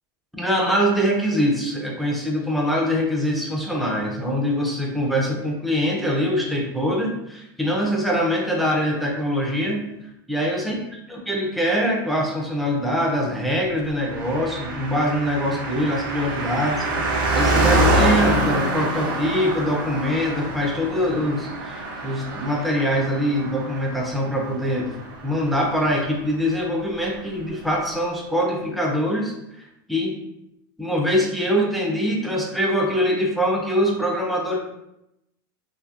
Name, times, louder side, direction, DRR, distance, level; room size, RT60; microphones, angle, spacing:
voice 1, 0.3-9.8 10.3-10.7 11.1-30.2 30.8-34.6, equal, ahead, -2 dB, 0.3 m, -23 dB
Car passing by, 14.0-25.9 26.1-26.2, right 1 dB, 85° right, 0.6 m, -25 dB
2.7 x 2.6 x 2.3 m, 0.86 s
supercardioid pair, 160°, 12 cm